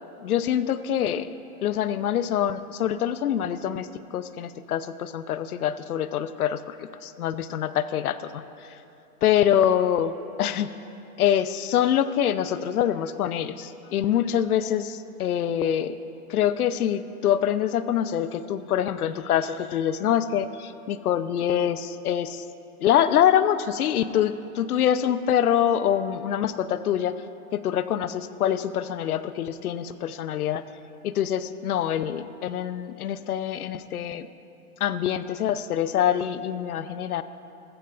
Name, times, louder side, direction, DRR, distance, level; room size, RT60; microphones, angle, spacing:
voice 1, 0.2-1.4 1.6-6.8 7.0-8.4 9.2-10.7 11.2-16.0 16.3-22.4 22.8-27.1 27.5-30.6 31.0-34.3 34.8-37.2, left 10 dB, 75° left, 13 dB, 0.8 m, -25 dB
19.5 x 15.0 x 2.6 m, 2.8 s
hypercardioid pair, 155°, 45 cm